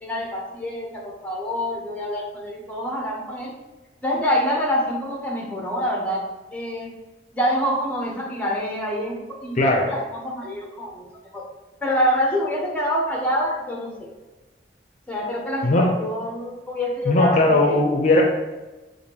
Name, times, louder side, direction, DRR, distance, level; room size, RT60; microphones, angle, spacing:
voice 1, 0.0-3.5 4.0-6.3 6.5-6.9 7.3-9.6 9.9-11.0 11.3-11.5 11.8-14.1 15.1-17.8, equal, 10° left, -1 dB, 0.8 m, -26 dB
voice 2, 9.5-9.9 15.6-15.9 17.0-18.2, left 2 dB, 45° left, 0 dB, 0.5 m, -18 dB
6.4 x 2.5 x 2.9 m, 1.1 s
head